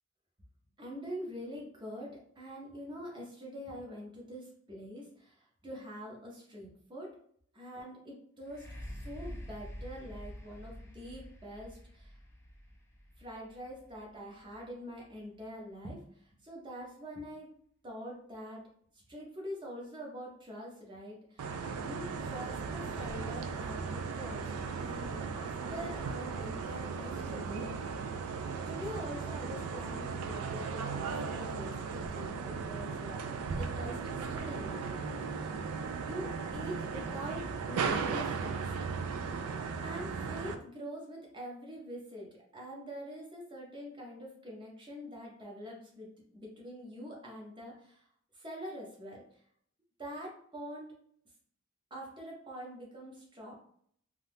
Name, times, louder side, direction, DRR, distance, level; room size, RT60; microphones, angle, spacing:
voice 1, 0.8-7.1 7.5-12.2 13.2-17.5 17.8-18.6 18.9-21.5 21.8-28.0 28.7-35.6 36.0-38.6 39.8-48.1 48.3-49.2 50.0-50.9 51.9-53.5, equal, 20° right, -2 dB, 0.7 m, -45 dB
sound 1, 8.4-16.2 16.8-16.9, equal, 10° left, 0.4 m, -48 dB
sound 2, 21.4-40.5, right 5 dB, 90° right, 0.4 m, -37 dB
2.6 x 2.4 x 3.4 m, 0.64 s
head